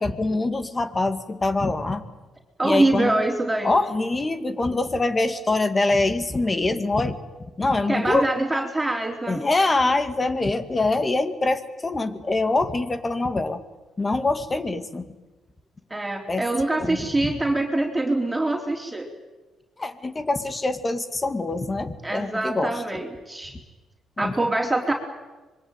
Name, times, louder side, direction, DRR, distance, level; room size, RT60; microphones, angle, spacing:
voice 1, 0.0-2.0 2.6-3.2 3.6-7.2 7.6-8.3 9.3-13.6 14.0-15.0 16.3-16.4 16.8-17.3 19.8-22.7 24.2-24.3, left 2 dB, 25° left, 10 dB, 2.2 m, -24 dB
voice 2, 2.6-3.7 7.9-9.4 15.9-19.1 22.0-23.5 24.2-24.9, right 2 dB, 15° right, 1 dB, 3.8 m, -24 dB
26.0 x 22.5 x 9.1 m, 1.2 s
cardioid pair, 90°, 0 cm